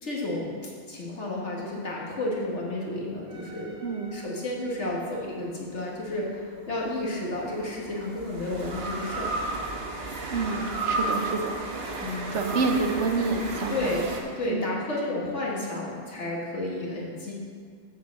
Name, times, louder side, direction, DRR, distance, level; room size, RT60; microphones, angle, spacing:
voice 1, 0.0-3.8 4.1-9.3 12.0-12.4 13.7-14.1 14.4-17.3, left 1 dB, 80° left, -3 dB, 2.0 m, -31 dB
sound 1, 3.3-4.8 6.7-14.2, right 2 dB, 65° right, 1.3 m, -33 dB
voice 2, 3.8-4.1 10.3-11.7 12.3-13.9 14.5-14.7, right 4 dB, 90° right, 4 dB, 1.2 m, -28 dB
7.4 x 7.0 x 6.2 m, 2.1 s
omnidirectional pair, 1.2 m